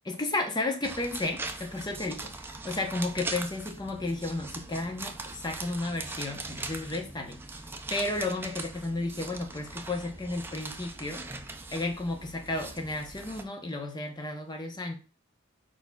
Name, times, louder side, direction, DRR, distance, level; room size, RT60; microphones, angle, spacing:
voice 1, 0.0-7.6 7.9-11.3 11.7-14.9, left 2 dB, 20° left, 0.7 m, -33 dB
sound 1, 0.8-13.4, right 3 dB, 10° right, 0.3 m, -41 dB
4.7 x 4.1 x 2.2 m
head